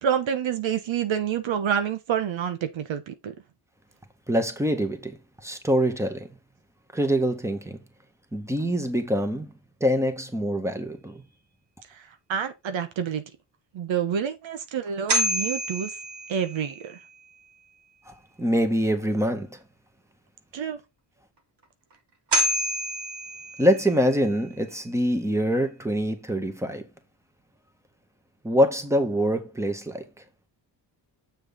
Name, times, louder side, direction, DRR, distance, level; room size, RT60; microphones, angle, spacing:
voice 1, 0.0-3.3 11.9-13.2 13.7-16.0 16.3-17.0 20.5-20.8, right 8 dB, 80° right, 1.2 m, -28 dB
voice 2, 4.3-5.2 5.4-6.3 6.9-7.8 8.3-9.5 9.8-11.2 18.1-19.6 23.6-26.8 28.4-30.0, equal, 5° right, 1.8 m, -24 dB
sound 1, 14.9-17.0 21.9-22.0 22.3-24.2, equal, 60° right, 2.7 m, -28 dB
7.3 x 6.4 x 3.9 m
cardioid pair, 75°, 46 cm